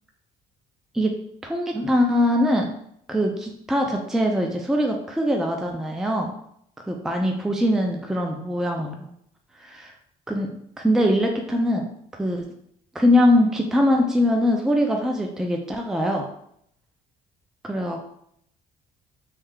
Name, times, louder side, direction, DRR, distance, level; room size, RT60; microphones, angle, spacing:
voice 1, 1.4-2.7 3.1-6.3 6.9-9.1 9.6-9.9 10.3-10.5 10.8-11.9 12.2-12.5 12.9-16.3 17.6-18.0, left 1 dB, 5° right, 2 dB, 0.4 m, -22 dB
3.3 x 2.7 x 3.6 m, 0.71 s
cardioid pair, 110°, 17 cm